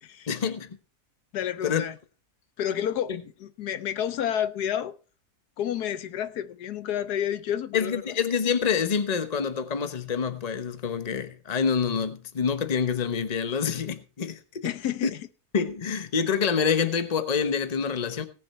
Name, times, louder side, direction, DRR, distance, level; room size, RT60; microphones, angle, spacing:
voice 1, 0.3-0.8 1.6-1.8 7.7-14.7 15.5-18.2, left 6 dB, 30° left, 1.0 m, -27 dB
voice 2, 1.3-2.0 2.6-5.0 5.6-8.1 14.6-15.3, left 10 dB, 80° left, 1.4 m, -30 dB
18.0 x 7.2 x 4.3 m
omnidirectional pair, 1.7 m